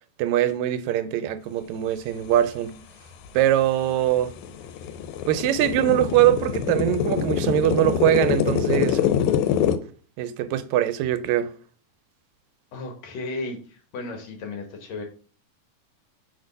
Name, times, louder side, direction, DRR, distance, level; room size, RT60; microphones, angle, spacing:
voice 1, 0.2-2.7 3.3-4.3 5.3-9.0 10.2-11.5, right 12 dB, 80° right, 1.8 m, -22 dB
sound 1, 3.3-3.4 3.8-9.8, left 9 dB, 90° left, 2.0 m, -25 dB
voice 2, 12.7-15.0, left 3 dB, 70° left, 2.3 m, -34 dB
5.1 x 3.9 x 5.2 m
omnidirectional pair, 3.3 m